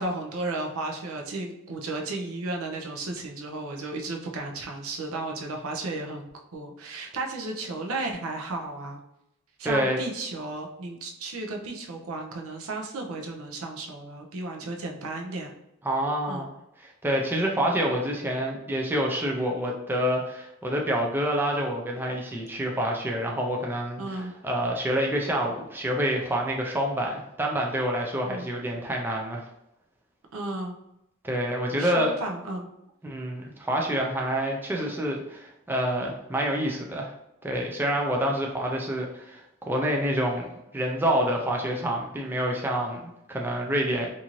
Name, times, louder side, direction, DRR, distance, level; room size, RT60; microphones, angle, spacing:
voice 1, 0.0-9.0 9.6-15.5 16.3-16.4 24.0-24.3 28.2-28.5 30.3-30.7 31.8-32.7, right 2 dB, 75° right, 1 dB, 0.5 m, -34 dB
voice 2, 9.6-10.0 15.8-16.5 16.8-29.4 31.2-32.2 33.0-37.1 37.4-44.1, equal, 10° right, -1 dB, 0.3 m, -27 dB
2.6 x 2.5 x 2.9 m, 0.84 s
head